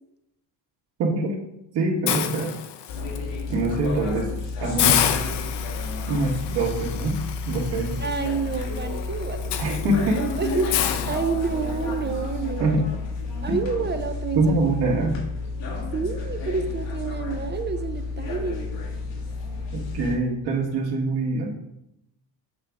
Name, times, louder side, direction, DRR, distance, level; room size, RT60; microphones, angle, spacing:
voice 1, 1.0-1.3 1.7-2.5 3.5-4.3 4.6-5.0 6.1-7.2 7.4-8.0 9.6-10.3 12.6-12.9 13.5-13.6 14.3-15.2 19.7-21.5, right 2 dB, 65° right, -1 dB, 1.7 m, -24 dB
Hiss, 2.1-3.2 3.6-3.9 4.2-4.3 4.8-11.8, left 10 dB, 70° left, 0.7 m, -29 dB
sound 1, 2.9-20.2, left 3 dB, 90° left, 1.8 m, -31 dB
voice 2, 8.0-9.8 10.2-12.7 13.4-14.6 15.9-18.7, right 5 dB, 30° right, 7 dB, 0.3 m, -29 dB
7.9 x 5.2 x 3.5 m, 0.84 s
cardioid pair, 135°, 42 cm